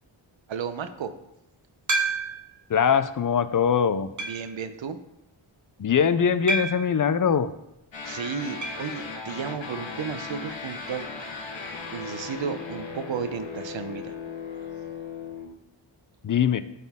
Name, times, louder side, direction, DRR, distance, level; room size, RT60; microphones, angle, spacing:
voice 1, 0.5-1.1 4.2-5.0 8.0-11.1 11.9-14.1, right 6 dB, 65° right, 10 dB, 0.8 m, -33 dB
sound 1, 1.9-2.6 3.2-3.3 4.2-4.6 6.5-7.0 8.6-8.9 9.2-9.3 9.5-9.6 11.6-11.7, right 3 dB, 35° right, 1.1 m, -29 dB
voice 2, 2.7-4.1 5.8-7.5 16.2-16.6, left 7 dB, 40° left, 12 dB, 0.5 m, -22 dB
sound 2, 7.9-15.5, left 5 dB, 65° left, 1.3 m, -37 dB
12.5 x 4.2 x 3.6 m, 0.86 s
wide cardioid pair, 80°, 49 cm